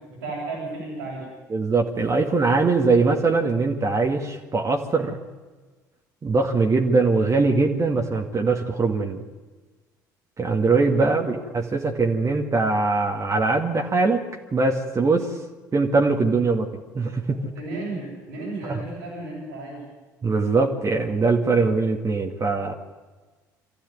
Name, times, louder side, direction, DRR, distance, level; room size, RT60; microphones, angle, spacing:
voice 1, 0.1-1.3 11.2-11.3 17.5-19.8, right 2 dB, 85° right, -8 dB, 7.7 m, -33 dB
voice 2, 1.5-5.2 6.2-9.2 10.4-14.2 14.5-15.3 15.7-16.7 16.9-17.5 18.7-18.8 20.2-22.7, right 3 dB, 35° right, 2 dB, 2.2 m, -21 dB
24.5 x 14.5 x 9.6 m, 1.3 s
hypercardioid pair, 55°, 10 cm